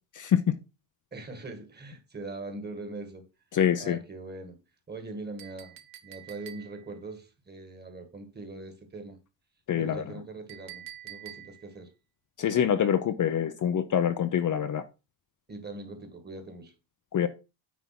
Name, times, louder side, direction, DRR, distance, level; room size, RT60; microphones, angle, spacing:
voice 1, 1.1-3.3 3.8-4.6 4.9-9.2 9.8-11.9 15.5-16.7, right 2 dB, 20° right, 1.9 m, -41 dB
voice 2, 3.5-4.0 9.7-10.0 12.4-14.8 17.1-17.3, left 9 dB, 40° left, 0.7 m, -25 dB
Chink clink, 5.4-7.0 10.5-11.8, right 13 dB, 65° right, 1.1 m, -47 dB
9.4 x 3.5 x 5.9 m
cardioid pair, 145°, 45 cm